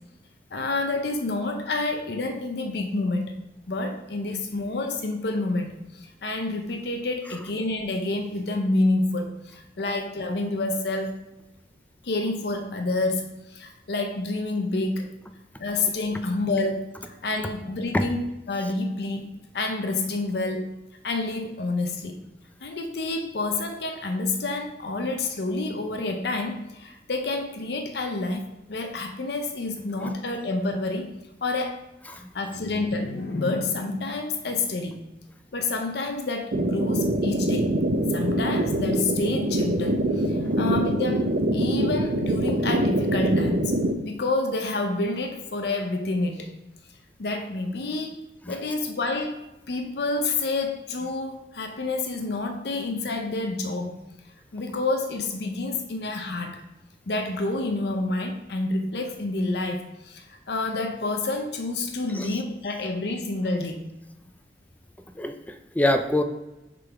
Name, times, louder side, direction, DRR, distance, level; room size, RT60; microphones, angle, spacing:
voice 1, 0.5-3.4 3.7-11.2 12.0-15.1 15.6-19.3 19.5-20.8 21.0-22.2 22.6-31.1 31.4-31.8 32.1-35.0 35.5-37.8 38.1-43.7 44.0-46.5 47.2-48.2 48.5-49.4 49.7-54.0 54.5-56.6 57.1-63.8, left 2 dB, 65° left, 4 dB, 0.6 m, -28 dB
sound 1, 36.5-43.9, right 1 dB, 55° right, 0.6 m, -24 dB
voice 2, 65.2-66.2, left 1 dB, 10° left, 7 dB, 0.4 m, -25 dB
6.6 x 3.8 x 4.6 m, 0.98 s
head